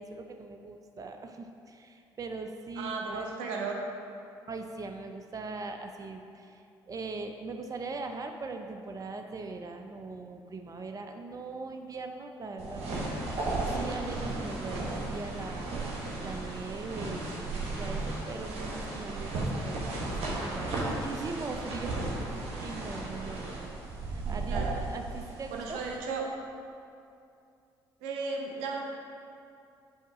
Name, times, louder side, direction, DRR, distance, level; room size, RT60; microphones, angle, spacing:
voice 1, 0.0-3.3 4.5-15.8 16.2-23.7 24.1-25.8, right 3 dB, 30° right, 5 dB, 0.5 m, -41 dB
voice 2, 2.8-3.8 24.5-24.7 25.5-26.2 28.0-28.8, right 4 dB, 80° right, 1 dB, 0.7 m, -35 dB
sound 1, 12.6-26.0, right 2 dB, 65° right, 1.4 m, -35 dB
7.1 x 3.5 x 4.8 m, 2.5 s
hypercardioid pair, 45°, 12 cm